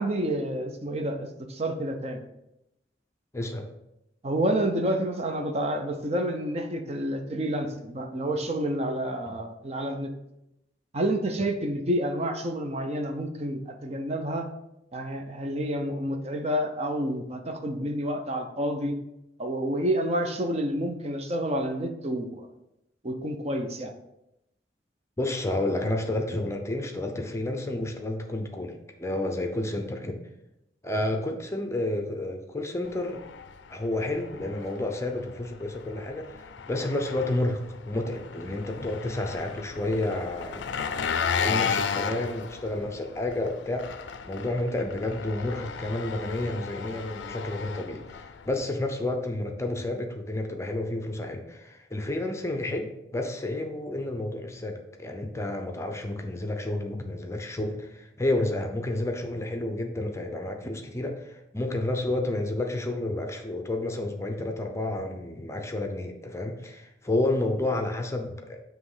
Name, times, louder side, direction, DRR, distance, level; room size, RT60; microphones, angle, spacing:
voice 1, 0.0-2.2 4.2-10.1 10.9-14.5 14.9-18.9 19.4-22.5 23.0-23.9, right 1 dB, 35° right, 5 dB, 0.6 m, -29 dB
voice 2, 3.3-3.7 25.2-30.2 30.8-33.2 33.7-40.6 41.4-68.6, left 1 dB, 15° left, 4 dB, 0.6 m, -30 dB
Engine, 32.9-48.7, left 6 dB, 85° left, 0.4 m, -35 dB
7.5 x 3.1 x 4.8 m, 0.86 s
head